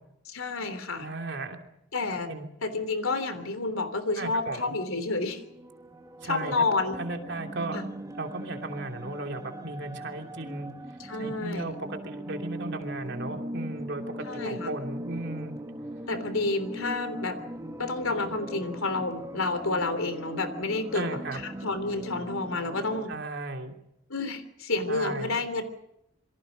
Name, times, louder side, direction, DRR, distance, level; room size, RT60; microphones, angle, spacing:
voice 1, 0.3-1.1 1.9-2.3 2.6-5.4 6.2-7.0 7.7-7.8 11.1-11.7 14.2-14.7 16.1-17.4 17.8-23.1 24.1-25.6, left 3 dB, 75° left, 11 dB, 3.3 m, -30 dB
voice 2, 1.0-1.6 2.3-2.5 4.2-4.7 6.2-6.6 7.0-7.8 8.2-10.7 11.2-15.6 20.9-21.4 23.1-23.7 24.9-25.3, right 2 dB, 55° right, 4 dB, 2.9 m, -35 dB
sound 1, 5.4-23.1, right 1 dB, 15° right, 1.6 m, -40 dB
27.0 x 23.5 x 5.2 m, 0.81 s
head